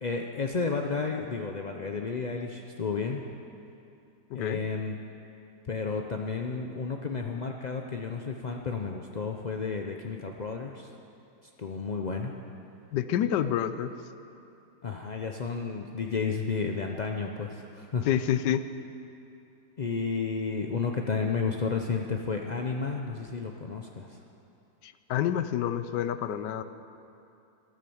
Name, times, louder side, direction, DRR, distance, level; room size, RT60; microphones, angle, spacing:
voice 1, 0.0-3.2 4.3-5.0 5.7-10.9 11.6-12.3 14.8-18.1 19.8-24.2, left 5 dB, 70° left, 2 dB, 0.4 m, -32 dB
voice 2, 4.3-4.6 12.9-13.9 18.1-18.6 24.8-26.6, left 10 dB, 90° left, 11 dB, 1.3 m, -28 dB
13.0 x 12.5 x 7.1 m, 2.7 s
omnidirectional pair, 1.8 m